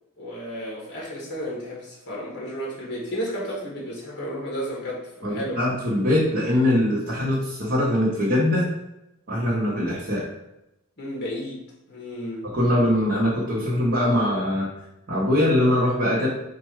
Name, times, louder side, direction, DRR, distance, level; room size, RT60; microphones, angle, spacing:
voice 1, 0.2-5.6 11.0-11.6 11.9-12.5, equal, 50° left, -3 dB, 1.2 m, -32 dB
voice 2, 5.2-8.7 9.3-10.2 12.4-14.7 15.1-16.3, left 1 dB, 45° right, -7 dB, 1.0 m, -22 dB
4.5 x 2.5 x 4.5 m, 0.90 s
head